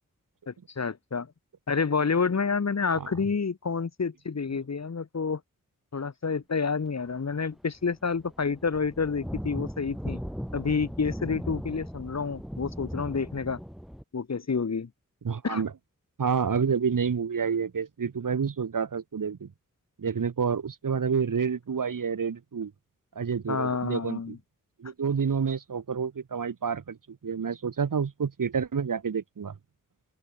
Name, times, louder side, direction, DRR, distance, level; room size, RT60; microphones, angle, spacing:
voice 1, 0.5-1.3 1.7-5.4 5.9-10.2 10.5-13.6 14.1-14.9 15.4-15.6 23.5-24.4, left 5 dB, 55° left, 2.5 m, -29 dB
relámpago lightning lluvia rain, 7.4-7.5 7.8-14.0, equal, ahead, 3.5 m, -38 dB
voice 2, 15.2-15.7 16.2-19.5 20.0-22.7 23.1-24.3 24.8-27.0 27.2-29.5, right 6 dB, 85° right, 3.2 m, -28 dB
open air
wide cardioid pair, 105°, 32 cm